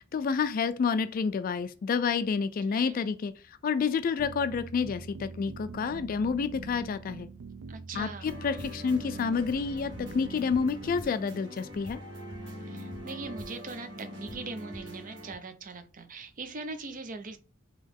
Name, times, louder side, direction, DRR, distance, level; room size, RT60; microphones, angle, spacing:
voice 1, 0.1-3.3 3.6-7.3 7.9-12.0, left 5 dB, 45° left, 0.3 m, -29 dB
sound 1, 4.2-11.0, right 4 dB, 90° right, 0.4 m, -44 dB
voice 2, 7.7-8.3 12.7-17.4, right 3 dB, 40° right, 0.6 m, -41 dB
sound 2, 8.2-15.3, equal, 65° right, 1.5 m, -43 dB
3.8 x 2.9 x 3.5 m
head